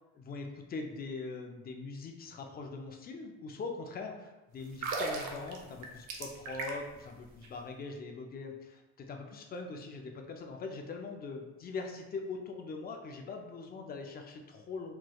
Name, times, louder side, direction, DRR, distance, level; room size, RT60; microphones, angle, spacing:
voice 1, 0.2-14.9, left 3 dB, 30° left, 3 dB, 0.4 m, -42 dB
sound 1, 4.7-7.0 7.3-7.5, right 3 dB, 75° right, 0.7 m, -37 dB
4.5 x 3.0 x 2.3 m, 1.1 s
cardioid pair, 135°, 30 cm